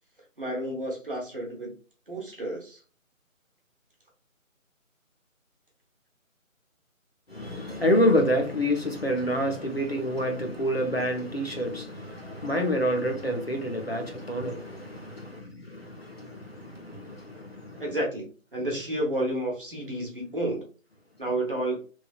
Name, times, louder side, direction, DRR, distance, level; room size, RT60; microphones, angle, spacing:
voice 1, 0.4-1.7 2.1-2.8 17.8-18.3 18.5-20.7 21.2-21.8, right 1 dB, 40° right, 0.8 m, -30 dB
voice 2, 7.3-17.8, equal, 50° left, 0.5 m, -28 dB
3.1 x 2.1 x 2.3 m
figure-of-eight pair, 160°, 42 cm